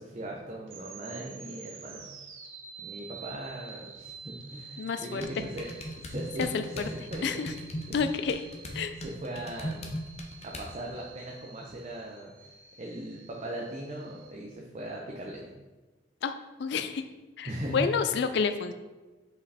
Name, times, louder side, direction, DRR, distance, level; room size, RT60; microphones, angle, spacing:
voice 1, 0.0-2.1 2.8-5.7 6.0-6.8 7.1-7.4 7.9-8.0 9.0-10.0 10.4-12.3 12.8-15.5 17.5-17.9, right 1 dB, 35° right, -2 dB, 0.7 m, -39 dB
sound 1, 0.6-14.3, right 6 dB, 75° right, 0.9 m, -49 dB
voice 2, 4.8-5.2 6.4-6.9 7.2-7.5 7.9-8.4 8.7-9.0 16.2-17.1 17.4-18.7, left 5 dB, 60° left, 9 dB, 0.3 m, -29 dB
sound 2, 5.2-10.7, equal, 30° left, 0.7 m, -39 dB
5.3 x 5.1 x 4.1 m, 1.2 s
head